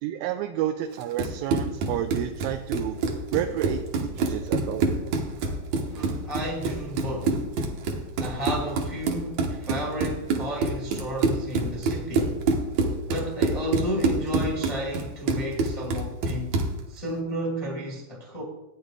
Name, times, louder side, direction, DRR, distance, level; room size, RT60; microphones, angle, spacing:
voice 1, 0.0-3.0 3.3-5.1, right 11 dB, 85° right, 2.4 m, -30 dB
Run, 1.0-16.8, right 3 dB, 65° right, 2.1 m, -27 dB
voice 2, 5.9-7.4 8.2-12.4 13.1-16.5 16.9-18.4, equal, 25° left, 0.6 m, -32 dB
14.0 x 9.1 x 3.6 m
omnidirectional pair, 4.1 m